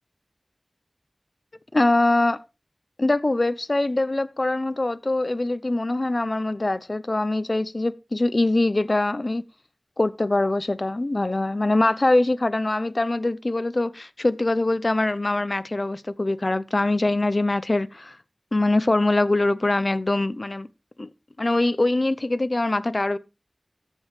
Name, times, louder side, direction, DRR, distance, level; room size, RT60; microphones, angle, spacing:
voice 1, 1.7-2.4 3.0-9.4 10.0-18.2 18.5-20.7 21.0-21.1 21.4-23.2, left 2 dB, 55° left, 0.8 m, -23 dB
14.0 x 5.5 x 4.8 m
wide cardioid pair, 50°, 0 cm